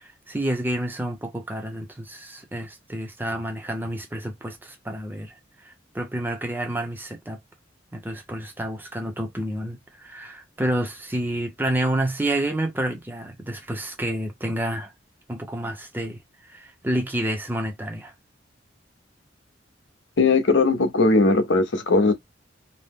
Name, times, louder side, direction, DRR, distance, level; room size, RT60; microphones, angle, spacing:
voice 1, 0.0-7.4 7.9-14.9 15.3-18.1, right 1 dB, 10° right, 0.6 m, -29 dB
voice 2, 20.2-22.1, left 3 dB, 70° left, 0.7 m, -19 dB
2.7 x 2.1 x 3.4 m
head